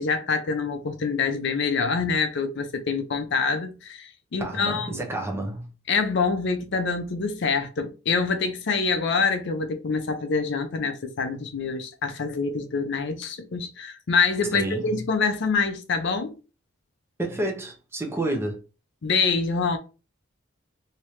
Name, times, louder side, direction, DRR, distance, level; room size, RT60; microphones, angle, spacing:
voice 1, 0.0-5.0 5.9-16.4 19.0-19.8, left 4 dB, 60° left, 0.5 m, -26 dB
voice 2, 4.4-5.7 14.5-15.0 17.2-18.6, right 1 dB, 15° right, 0.8 m, -30 dB
3.2 x 2.8 x 3.1 m
head